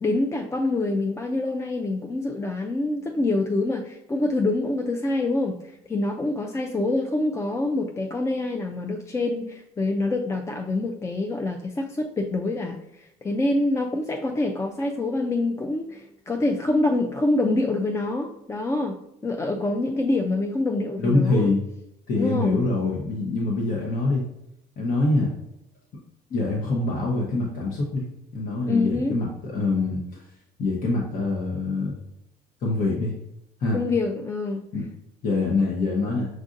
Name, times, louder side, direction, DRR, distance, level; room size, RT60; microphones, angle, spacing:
voice 1, 0.0-19.0 19.2-21.5 22.1-22.6 28.7-29.2 33.7-34.6, left 2 dB, 15° left, 3 dB, 0.3 m, -26 dB
voice 2, 21.0-21.6 22.1-24.2 24.8-25.3 26.3-28.0 28.3-30.2 30.6-31.9 32.6-33.1 33.6-33.8 34.7-34.8 35.2-36.3, left 2 dB, 55° left, -2 dB, 0.9 m, -24 dB
6.2 x 2.5 x 2.5 m, 0.82 s
cardioid pair, 110°, 17 cm